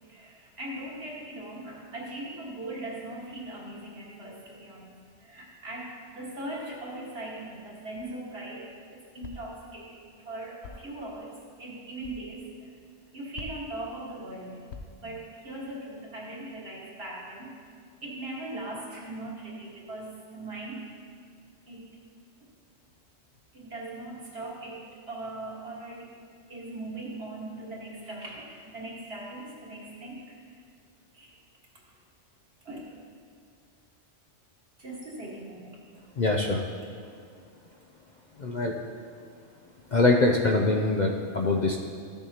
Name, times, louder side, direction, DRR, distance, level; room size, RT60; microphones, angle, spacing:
voice 1, 0.0-4.9 5.2-12.7 13.1-14.6 15.0-17.5 18.0-20.8 21.7-21.9 23.5-26.1 26.5-30.5 31.1-31.3 32.7-32.8 34.8-35.8, right 2 dB, 60° right, -4 dB, 1.9 m, -40 dB
sound 1, 8.0-8.3 9.2-9.6 10.6-11.0 12.0-12.2 13.4-13.8 14.7-15.1, left 4 dB, 70° left, 0.9 m, -44 dB
voice 2, 36.2-36.6 38.4-38.7 39.9-41.8, left 2 dB, 50° left, 1 dB, 0.6 m, -23 dB
13.5 x 7.0 x 2.8 m, 2.2 s
omnidirectional pair, 1.2 m